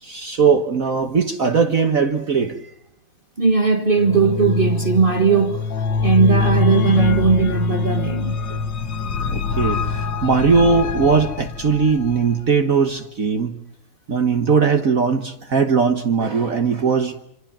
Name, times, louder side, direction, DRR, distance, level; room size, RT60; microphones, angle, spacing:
voice 1, 0.0-2.7 8.5-8.6 9.2-13.6 14.1-17.1, right 5 dB, 45° right, 1.5 m, -19 dB
voice 2, 3.4-8.4, right 5 dB, 30° right, 1.5 m, -18 dB
sound 1, 4.0-12.3, left 5 dB, 65° left, 2.0 m, -23 dB
26.5 x 26.5 x 7.4 m
omnidirectional pair, 2.2 m